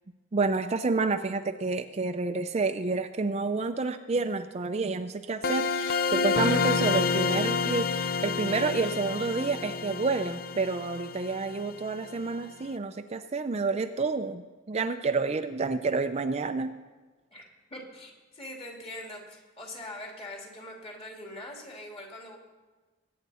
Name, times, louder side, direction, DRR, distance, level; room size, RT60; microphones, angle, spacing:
voice 1, 0.3-14.4 14.7-16.7, right 4 dB, 35° right, 8 dB, 0.5 m, -29 dB
sound 1, 5.4-12.1, left 5 dB, 50° left, 0.5 m, -29 dB
voice 2, 17.3-22.4, left 1 dB, 30° left, 0 dB, 2.6 m, -43 dB
21.0 x 9.6 x 4.2 m, 1.3 s
head